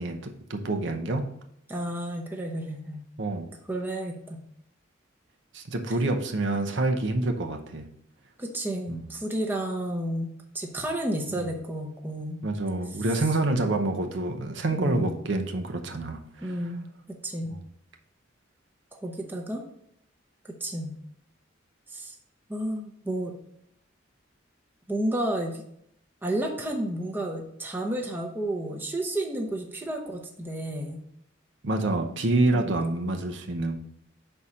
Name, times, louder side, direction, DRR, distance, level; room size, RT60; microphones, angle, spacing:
voice 1, 0.0-1.3 3.2-3.5 5.5-7.9 8.9-9.1 11.3-11.5 12.4-16.6 17.5-17.6 31.6-33.8, right 2 dB, 60° right, 5 dB, 0.7 m, -27 dB
voice 2, 1.7-3.0 3.7-4.4 8.4-12.4 14.8-15.1 16.4-16.9 17.2-17.5 19.0-19.6 20.6-20.9 21.9-22.1 22.5-23.3 24.9-25.6 26.2-31.0 32.5-32.7, right 1 dB, 10° right, 1 dB, 0.7 m, -31 dB
5.6 x 4.2 x 4.8 m, 0.72 s
head